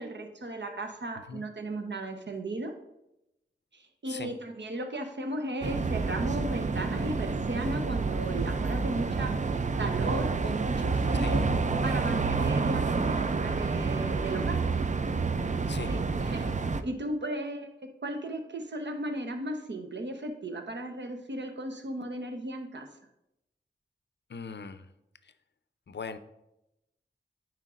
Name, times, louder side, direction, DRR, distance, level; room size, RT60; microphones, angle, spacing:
voice 1, 0.0-2.7 3.7-11.5 11.8-14.6 15.9-16.5 16.8-22.9, right 1 dB, 65° right, 4 dB, 0.9 m, -36 dB
sound 1, 5.6-16.8, right 4 dB, 40° right, 0.4 m, -29 dB
voice 2, 24.3-24.9 25.9-26.2, left 5 dB, 65° left, 11 dB, 0.5 m, -39 dB
9.7 x 4.5 x 2.5 m, 0.87 s
wide cardioid pair, 45°, 20 cm